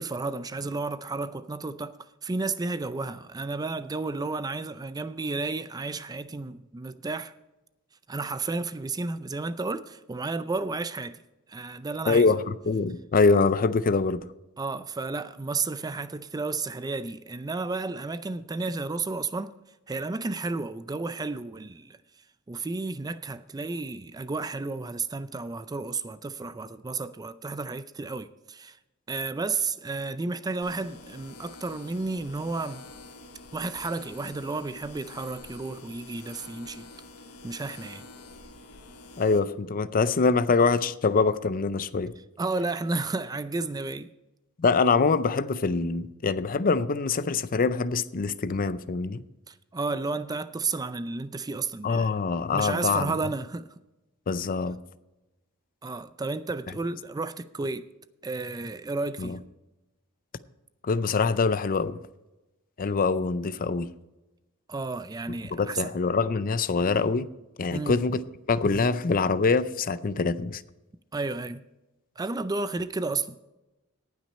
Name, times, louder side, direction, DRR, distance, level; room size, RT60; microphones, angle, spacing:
voice 1, 0.0-2.0 2.2-7.3 8.1-11.2 11.5-12.3 14.6-19.5 19.9-22.0 22.5-28.8 29.1-32.9 33.5-36.9 37.4-38.1 42.4-44.1 49.5-52.2 52.5-53.7 55.8-57.9 58.2-59.4 64.7-65.9 67.7-68.0 71.1-71.6 72.2-73.4, right 3 dB, 15° right, 0.4 m, -32 dB
voice 2, 12.1-14.2 39.2-42.1 44.6-49.2 51.8-53.2 54.3-54.8 59.2-59.4 60.8-62.0 62.8-63.9 65.5-67.3 67.6-68.2 68.5-70.6, left 4 dB, 40° left, 0.5 m, -24 dB
sound 1, 30.6-39.4, left 3 dB, 80° left, 1.3 m, -47 dB
18.5 x 6.1 x 4.3 m
head